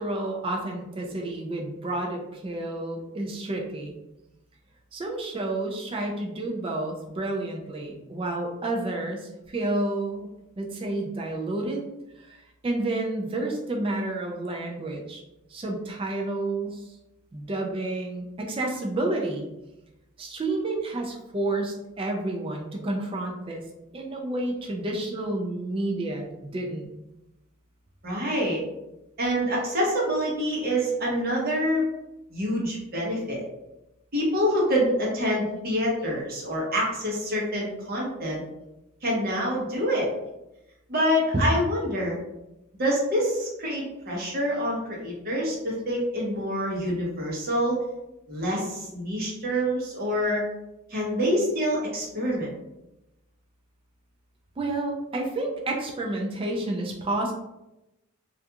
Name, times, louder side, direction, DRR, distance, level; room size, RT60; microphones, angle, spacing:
voice 1, 0.0-3.9 4.9-10.3 10.6-11.8 12.2-15.2 15.5-16.9 17.3-19.5 20.2-23.6 23.9-26.9 54.6-57.3, right 2 dB, 25° right, 0 dB, 0.3 m, -30 dB
voice 2, 28.0-28.6 29.2-31.8 32.3-33.4 34.1-38.4 39.0-40.1 40.9-42.2 42.8-47.8 48.3-50.4 50.9-52.5, equal, 45° right, -3 dB, 0.8 m, -26 dB
2.4 x 2.2 x 2.8 m, 0.94 s
head